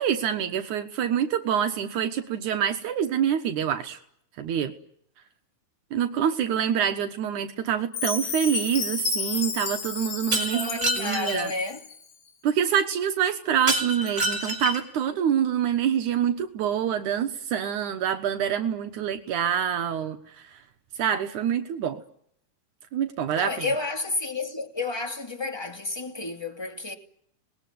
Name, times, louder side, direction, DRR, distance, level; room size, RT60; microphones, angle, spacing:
voice 1, 0.0-4.0 4.4-4.7 5.9-10.7 11.0-11.5 12.4-20.6 21.0-22.0 22.9-23.7, right 9 dB, 75° right, 2.7 m, -26 dB
Chime, 7.9-12.0, left 6 dB, 45° left, 2.1 m, -32 dB
Shatter, 10.3-11.5 13.7-15.0, right 1 dB, 25° right, 5.2 m, -27 dB
voice 2, 10.5-11.8 23.3-26.9, left 3 dB, 10° left, 2.2 m, -31 dB
26.5 x 20.5 x 9.4 m
omnidirectional pair, 3.6 m